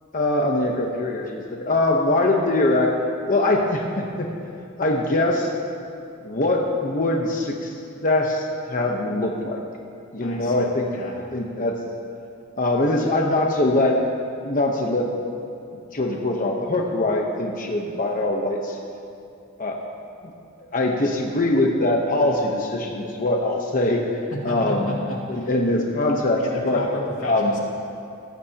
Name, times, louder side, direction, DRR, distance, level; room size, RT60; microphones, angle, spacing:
voice 1, 0.1-2.9 3.3-5.5 6.2-7.7 8.0-9.6 10.1-10.9 11.3-11.7 12.6-14.0 14.4-15.1 15.9-18.8 19.6-19.8 20.2-20.3 20.7-25.0 25.3-26.8 27.2-27.5, left 2 dB, 40° left, 0 dB, 1.0 m, -22 dB
voice 2, 10.2-11.2 24.3-25.5 26.4-27.6, left 1 dB, 85° left, -2 dB, 2.4 m, -33 dB
17.5 x 14.5 x 2.9 m, 2.5 s
head